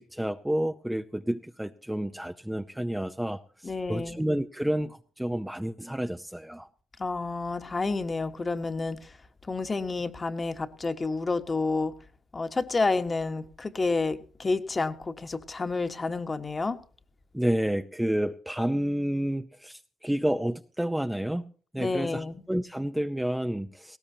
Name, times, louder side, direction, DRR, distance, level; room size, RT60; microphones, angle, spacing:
voice 1, 0.0-6.7 17.3-24.0, right 1 dB, 5° right, 7 dB, 0.6 m, -30 dB
voice 2, 3.6-4.2 7.0-9.1 9.5-11.9 12.3-16.8 21.8-22.4, left 3 dB, 30° left, 9 dB, 1.3 m, -29 dB
19.0 x 17.0 x 2.8 m, 0.41 s
cardioid pair, 90°, 0 cm